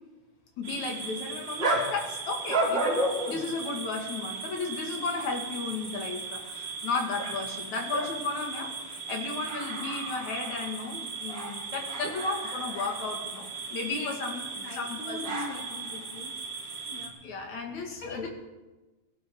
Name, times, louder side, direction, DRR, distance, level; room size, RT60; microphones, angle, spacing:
voice 1, 0.6-15.3 17.2-18.3, left 3 dB, 55° left, 1 dB, 3.6 m, -34 dB
sound 1, 0.6-17.1, right 3 dB, 35° right, 3.0 m, -34 dB
voice 2, 13.8-16.3 16.9-17.2 17.8-18.3, left 3 dB, 40° left, -1 dB, 3.1 m, -41 dB
20.0 x 17.5 x 3.9 m, 1.1 s
omnidirectional pair, 4.0 m